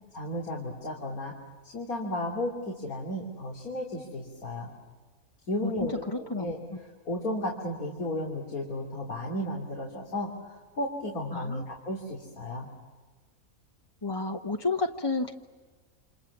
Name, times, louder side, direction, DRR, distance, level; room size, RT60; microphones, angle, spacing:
voice 1, 0.1-1.3 1.6-4.7 5.5-6.6 7.1-12.7, left 1 dB, 80° left, 0 dB, 3.7 m, -34 dB
voice 2, 5.6-6.5 11.3-11.6 14.0-15.3, left 3 dB, 20° left, 4 dB, 0.9 m, -31 dB
29.0 x 28.0 x 7.3 m, 1.3 s
omnidirectional pair, 1.5 m